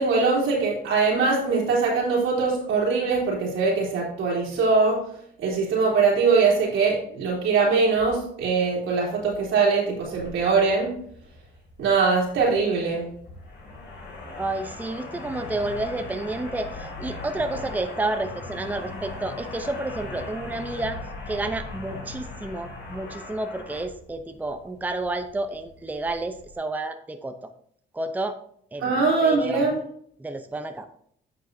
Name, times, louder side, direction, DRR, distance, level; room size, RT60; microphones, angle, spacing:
voice 1, 0.0-5.0 5.4-10.9 11.8-13.1 28.8-29.8, right 4 dB, 85° right, -4 dB, 3.3 m, -22 dB
sound 1, 10.0-26.6, left 2 dB, 60° left, 2.7 m, -39 dB
voice 2, 14.4-21.0 21.3-27.3 27.9-28.4 28.7-29.7 30.2-30.9, right 2 dB, 10° right, 7 dB, 0.6 m, -30 dB
9.4 x 6.4 x 2.7 m, 0.66 s
cardioid pair, 90°, 20 cm